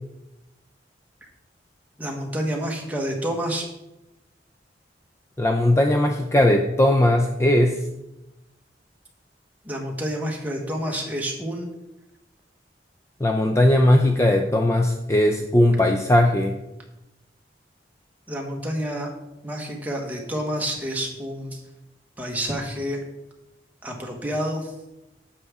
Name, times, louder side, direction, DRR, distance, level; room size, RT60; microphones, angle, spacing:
voice 1, 2.0-3.6 9.6-11.7 18.3-19.1 19.4-21.6 22.2-23.0 23.8-24.7, equal, 10° right, 0 dB, 1.3 m, -29 dB
voice 2, 5.4-7.8 13.2-16.6, left 1 dB, 15° left, 4 dB, 0.4 m, -18 dB
9.4 x 7.2 x 3.6 m, 0.94 s
head